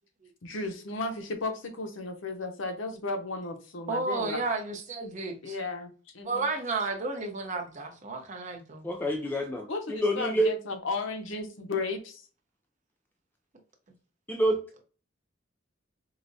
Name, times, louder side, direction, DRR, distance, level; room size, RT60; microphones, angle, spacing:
voice 1, 0.4-4.4 5.4-6.5 9.7-12.3, left 3 dB, 75° left, 0.7 m, -34 dB
voice 2, 3.9-5.6 6.2-8.9, right 3 dB, 40° right, 0.7 m, -32 dB
voice 3, 8.8-10.5 14.3-14.6, right 1 dB, 10° left, 0.3 m, -27 dB
4.8 x 2.0 x 2.7 m
head